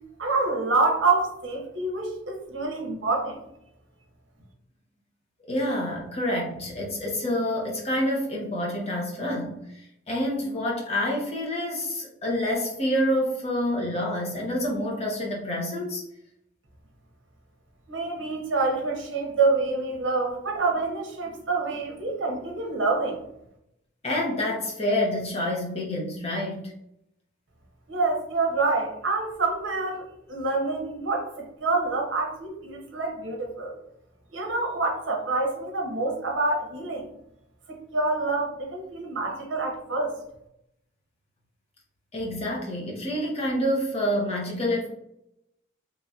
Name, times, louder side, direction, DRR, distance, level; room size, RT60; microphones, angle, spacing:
voice 1, 0.2-3.4 17.9-23.2 27.9-33.7 34.3-37.1 37.7-40.2, right 3 dB, 65° right, 1 dB, 0.7 m, -27 dB
voice 2, 5.5-16.0 24.0-26.7 42.1-44.9, left 1 dB, 30° left, -1 dB, 0.7 m, -27 dB
3.0 x 2.6 x 2.3 m, 0.80 s
head